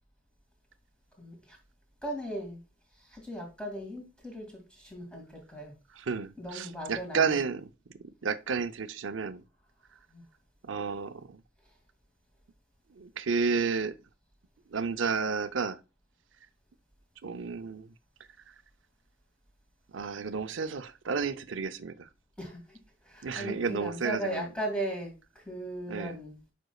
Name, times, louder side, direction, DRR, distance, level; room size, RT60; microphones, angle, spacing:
voice 1, 1.2-1.6 2.0-2.6 3.1-5.7 6.4-7.4 10.1-10.2 22.4-22.8 23.0-26.4, right 1 dB, 5° left, 2.2 m, -37 dB
voice 2, 5.9-7.6 8.2-9.4 10.6-11.4 13.0-13.9 14.7-15.8 17.2-17.9 19.9-22.1 23.2-24.5 25.9-26.2, right 5 dB, 75° right, 0.6 m, -31 dB
7.9 x 5.3 x 2.3 m
head